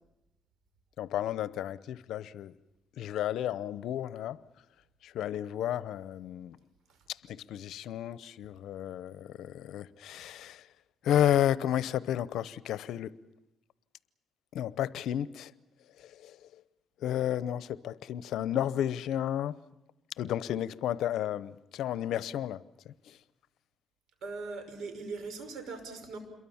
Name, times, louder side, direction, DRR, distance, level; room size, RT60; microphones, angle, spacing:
voice 1, 1.0-2.5 3.0-4.4 5.0-6.6 7.1-10.7 11.0-13.1 14.5-15.5 15.9-16.6 17.0-19.6 20.2-23.2, left 11 dB, 80° left, 0.8 m, -32 dB
voice 2, 24.2-26.2, right 4 dB, 75° right, 5.6 m, -40 dB
27.5 x 22.5 x 7.2 m
cardioid pair, 90°, 0 cm